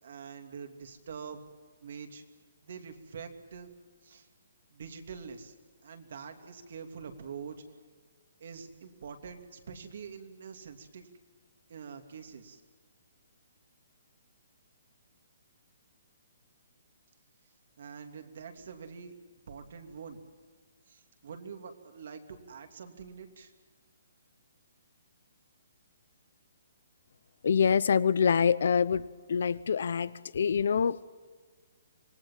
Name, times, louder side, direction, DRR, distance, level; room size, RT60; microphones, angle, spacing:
voice 1, 0.0-1.4 1.8-2.2 2.6-3.7 4.0-4.3 4.7-5.5 5.8-7.6 8.4-11.1 11.7-12.6 17.8-19.1 19.5-20.2 20.9-23.5, right 6 dB, 50° right, 6 dB, 2.9 m, -45 dB
voice 2, 27.4-29.0 29.3-31.0, left 6 dB, 55° left, 19 dB, 0.8 m, -25 dB
26.5 x 21.0 x 7.5 m, 1.5 s
hypercardioid pair, 175°, 0 cm